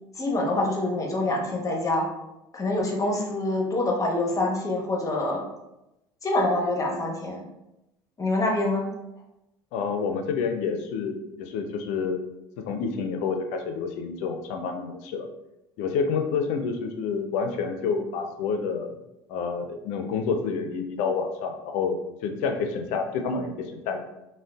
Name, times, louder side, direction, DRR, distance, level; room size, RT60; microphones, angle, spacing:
voice 1, 0.2-2.1 2.5-5.4 6.2-7.5 8.2-8.9, left 2 dB, 25° left, -1 dB, 0.8 m, -25 dB
voice 2, 9.7-12.2 12.6-15.3 15.8-18.9 19.3-22.0 22.2-24.0, left 5 dB, 65° left, 5 dB, 0.4 m, -28 dB
3.6 x 2.1 x 2.3 m, 0.92 s
hypercardioid pair, 75°, 13 cm